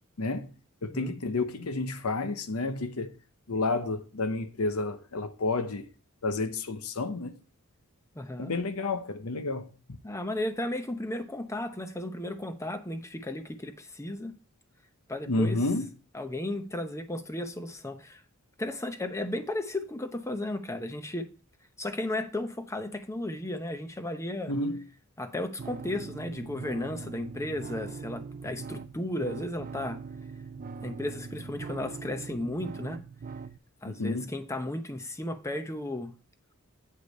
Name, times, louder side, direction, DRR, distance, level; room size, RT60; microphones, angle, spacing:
voice 1, 0.2-0.5 0.8-3.1 3.5-5.9 6.2-7.3 8.4-9.7 15.3-15.9 24.5-24.8 33.8-34.3, left 2 dB, 80° left, 0.9 m, -30 dB
voice 2, 8.1-8.5 10.0-14.4 15.1-15.6 16.1-18.2 18.6-21.3 21.8-24.5 25.2-30.0 30.8-33.0 33.8-36.1, left 1 dB, 15° left, 0.8 m, -34 dB
sound 1, 25.6-33.6, right 4 dB, 40° right, 0.4 m, -41 dB
8.4 x 4.9 x 5.3 m
head